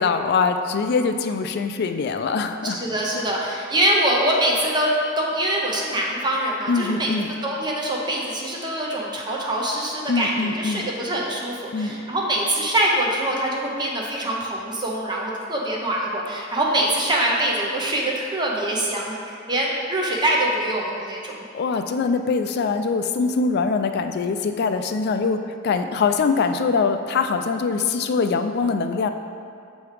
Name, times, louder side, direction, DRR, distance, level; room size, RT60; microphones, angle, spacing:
voice 1, 0.0-2.8 6.7-7.3 10.1-10.9 11.7-12.0 21.5-29.1, left 4 dB, 55° left, 7 dB, 0.3 m, -23 dB
voice 2, 2.6-7.1 7.4-21.3, right 1 dB, 20° right, -3 dB, 0.6 m, -24 dB
6.9 x 3.1 x 4.9 m, 2.4 s
head